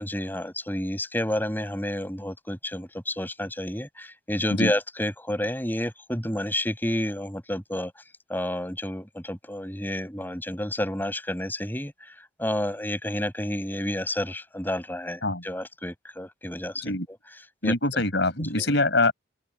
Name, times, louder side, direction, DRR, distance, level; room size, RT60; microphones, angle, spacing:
voice 1, 0.0-7.9 8.3-11.9 12.4-16.9 17.6-18.0 18.6-18.7, left 1 dB, 10° left, 7.2 m, -30 dB
voice 2, 17.6-19.1, left 2 dB, 60° left, 5.4 m, -24 dB
open air
head